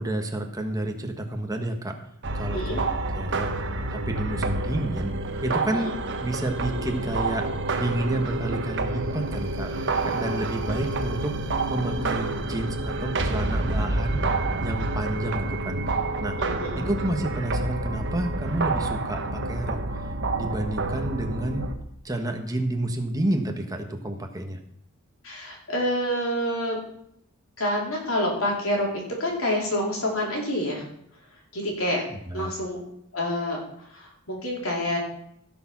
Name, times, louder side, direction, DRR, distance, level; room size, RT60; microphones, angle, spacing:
voice 1, 0.0-2.0 2.3-2.9 3.1-3.5 3.9-5.2 5.4-7.5 7.7-9.7 10.0-11.4 11.7-14.2 14.6-15.8 16.2-16.4 16.8-19.8 20.4-21.7 22.0-24.6 32.1-32.5, right 1 dB, 15° right, 4 dB, 1.4 m, -30 dB
sound 1, 2.2-21.7, right 2 dB, 55° right, 1.3 m, -28 dB
voice 2, 2.5-2.8 5.9-6.0 16.4-16.9 25.2-26.8 27.6-30.8 31.5-32.0 32.3-32.8 33.1-33.6 33.9-35.0, left 1 dB, 65° left, -1 dB, 4.3 m, -27 dB
16.0 x 6.9 x 6.1 m, 0.74 s
head